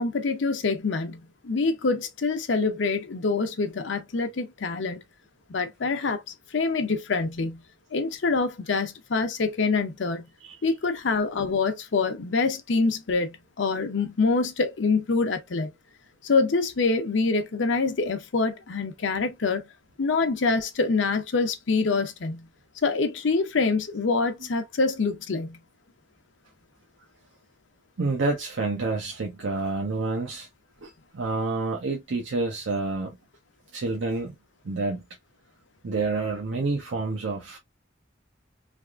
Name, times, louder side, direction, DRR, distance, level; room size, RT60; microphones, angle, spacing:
voice 1, 0.0-5.0 5.5-6.2 6.5-7.6 7.9-10.3 10.6-15.7 16.2-19.7 20.0-22.5 22.8-25.6, left 4 dB, 70° left, 0.6 m, -25 dB
voice 2, 28.0-30.5 30.8-33.2 33.7-34.4 34.6-35.0 35.8-37.6, right 3 dB, 85° right, 0.7 m, -28 dB
3.4 x 2.4 x 2.3 m
head